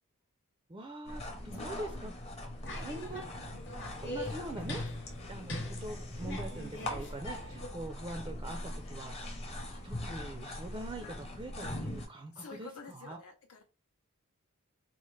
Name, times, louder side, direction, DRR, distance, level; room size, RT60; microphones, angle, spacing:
voice 1, 0.7-2.1 2.7-3.2 4.0-4.8 5.3-9.2 9.8-13.2, right 2 dB, 20° right, 5 dB, 0.4 m, -43 dB
sound 1, 1.1-12.1, left 1 dB, 30° left, 0.8 m, -41 dB
voice 2, 1.5-1.8 7.3-7.5 8.8-9.0 12.3-13.6, left 5 dB, 75° left, 3 dB, 0.6 m, -50 dB
sound 2, 2.6-7.7, left 1 dB, 55° left, 1.0 m, -42 dB
4.2 x 2.1 x 3.1 m, 0.31 s
head